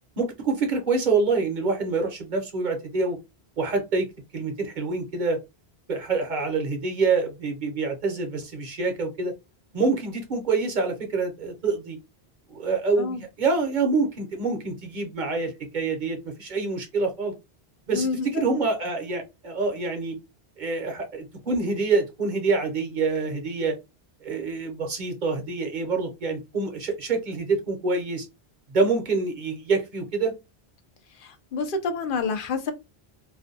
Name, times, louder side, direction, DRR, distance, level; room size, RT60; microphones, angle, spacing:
voice 1, 0.2-3.2 3.6-4.1 4.3-5.4 5.9-9.3 9.7-12.0 12.5-17.3 17.9-20.2 20.6-23.8 24.2-28.3 28.7-30.3, right 4 dB, 55° right, 0.8 m, -26 dB
voice 2, 17.9-18.4 31.1-32.7, left 4 dB, 60° left, 0.7 m, -28 dB
2.4 x 2.2 x 2.6 m
omnidirectional pair, 1.1 m